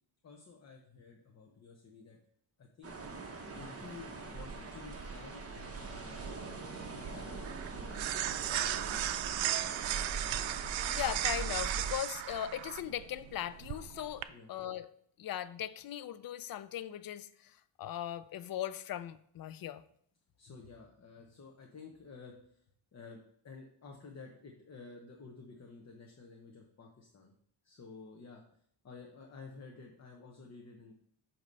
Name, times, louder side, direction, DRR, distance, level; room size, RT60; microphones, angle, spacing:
voice 1, 0.2-2.2 2.6-2.9 3.6-6.3 6.9-8.8 9.5-9.7 14.3-14.5 20.4-22.6 22.9-27.3 27.6-28.4 28.8-30.9, left 4 dB, 35° left, 0 dB, 0.9 m, -52 dB
sound 1, 2.8-11.9, right 4 dB, 30° right, 1.1 m, -42 dB
sound 2, 5.8-14.2, right 12 dB, 75° right, 0.5 m, -36 dB
voice 2, 10.9-14.9 15.2-19.8, left 11 dB, 50° left, 14 dB, 0.5 m, -39 dB
8.2 x 3.0 x 5.3 m, 0.64 s
cardioid pair, 110°, 47 cm